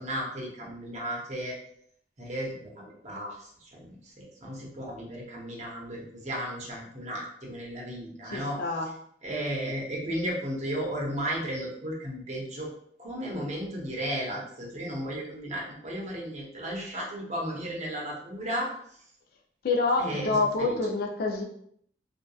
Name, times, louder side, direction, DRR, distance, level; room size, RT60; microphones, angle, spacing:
voice 1, 0.0-1.6 2.2-3.9 4.2-8.6 9.2-12.7 13.0-18.7 20.0-20.8, equal, 40° right, -3 dB, 0.7 m, -34 dB
voice 2, 8.2-8.9 19.6-21.4, left 3 dB, 55° left, 2 dB, 0.4 m, -27 dB
2.7 x 2.2 x 2.3 m, 0.66 s
head